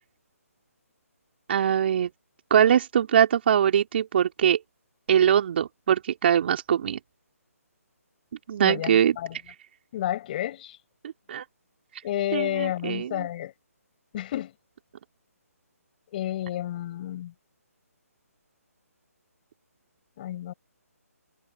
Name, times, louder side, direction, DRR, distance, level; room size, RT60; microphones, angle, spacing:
voice 1, 1.5-2.1 2.5-4.6 5.1-7.0 8.5-9.1 11.0-11.4 12.3-13.3, right 9 dB, 45° right, 3.3 m, -22 dB
voice 2, 8.6-9.4 9.9-10.8 12.0-13.5 14.1-14.5 16.1-17.3 20.2-20.5, left 12 dB, 35° left, 6.9 m, -30 dB
figure-of-eight pair, 150°, 8 cm